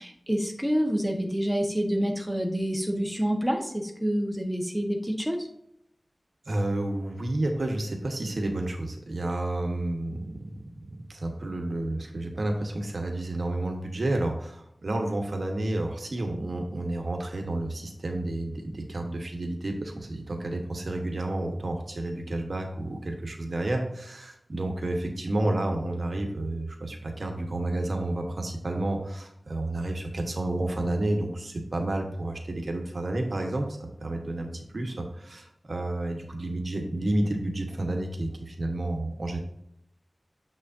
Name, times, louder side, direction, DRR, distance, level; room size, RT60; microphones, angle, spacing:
voice 1, 0.0-5.5, equal, 5° right, 2 dB, 1.3 m, -27 dB
voice 2, 6.5-10.6 11.1-39.4, right 1 dB, 70° right, 3 dB, 1.2 m, -30 dB
7.0 x 6.4 x 2.7 m, 0.75 s
wide cardioid pair, 65°, 0 cm